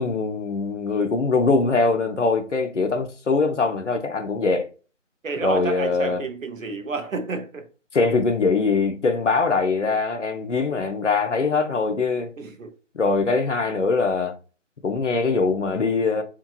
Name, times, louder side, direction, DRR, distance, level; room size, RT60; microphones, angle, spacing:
voice 1, 0.0-4.7 5.4-6.2 7.9-12.3 12.9-14.3 14.8-16.2, left 4 dB, 65° left, 0.6 m, -22 dB
voice 2, 5.2-7.7 12.4-12.7, right 3 dB, 80° right, 0.6 m, -30 dB
2.8 x 2.2 x 2.3 m
figure-of-eight pair, 160°, 39 cm